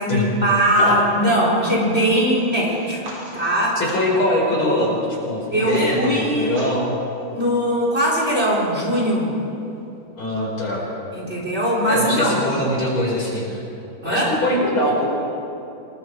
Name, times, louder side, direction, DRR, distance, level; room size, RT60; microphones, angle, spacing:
voice 1, 0.0-3.0 3.3-3.8 5.5-6.5 7.3-9.3 11.1-12.4 14.0-14.3, equal, 30° right, -3 dB, 4.5 m, -20 dB
sound 1, 2.6-4.2 5.0-6.0 6.4-7.1, right 1 dB, 85° right, 6.3 m, -40 dB
voice 2, 3.8-7.0 10.2-10.9 11.9-13.6 14.0-15.1, left 1 dB, 80° left, -3 dB, 6.0 m, -22 dB
28.0 x 20.0 x 4.8 m, 2.8 s
omnidirectional pair, 2.2 m